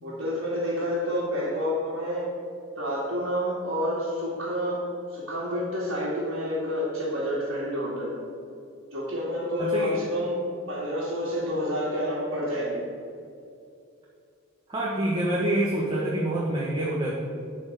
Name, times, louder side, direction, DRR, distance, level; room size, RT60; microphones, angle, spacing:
voice 1, 0.0-2.3 2.8-4.8 5.1-8.2 8.9-12.8, equal, 65° right, -9 dB, 2.3 m, -29 dB
voice 2, 9.6-10.0 14.7-17.1, right 1 dB, 25° right, -5 dB, 1.3 m, -26 dB
11.5 x 4.5 x 8.0 m, 2.5 s
head